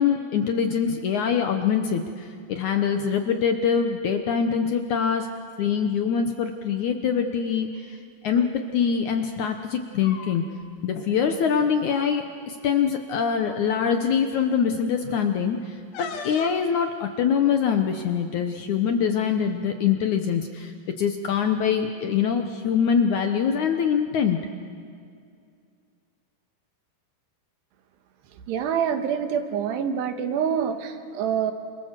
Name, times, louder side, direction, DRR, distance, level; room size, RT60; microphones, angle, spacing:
voice 1, 0.0-5.3 5.6-10.4 10.8-20.7 21.0-24.4, left 7 dB, 70° left, 6 dB, 1.9 m, -24 dB
sound 1, 8.2-8.5 9.7-10.6 10.9-11.1 11.5-11.7 12.7-12.8 13.4-13.7 15.9-16.7, left 6 dB, 85° left, 4.0 m, -38 dB
voice 2, 28.5-31.5, right 8 dB, 90° right, 7 dB, 3.6 m, -26 dB
29.0 x 26.0 x 7.5 m, 2.3 s
omnidirectional pair, 4.7 m